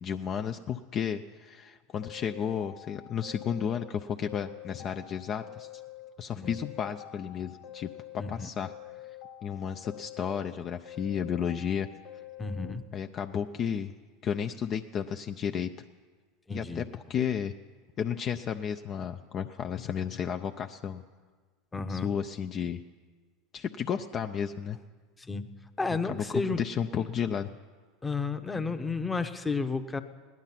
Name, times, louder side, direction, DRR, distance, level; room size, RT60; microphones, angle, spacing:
voice 1, 0.0-5.8 6.2-8.7 9.4-11.9 12.9-13.9 14.2-15.7 16.5-17.5 18.0-21.0 21.9-22.8 23.5-24.8 26.1-27.5, left 8 dB, 40° left, 6 dB, 0.5 m, -33 dB
sound 1, 2.0-3.9 4.2-6.1 6.4-8.3 8.6-10.5 10.9-12.7, left 13 dB, 60° left, 1.4 m, -47 dB
voice 2, 12.4-12.8 16.5-16.8 21.7-22.1 25.2-25.4 25.8-26.6 27.0-27.1 28.0-30.0, left 4 dB, 15° left, 8 dB, 0.9 m, -32 dB
17.0 x 10.5 x 5.8 m, 1.5 s
hypercardioid pair, 95°, 0 cm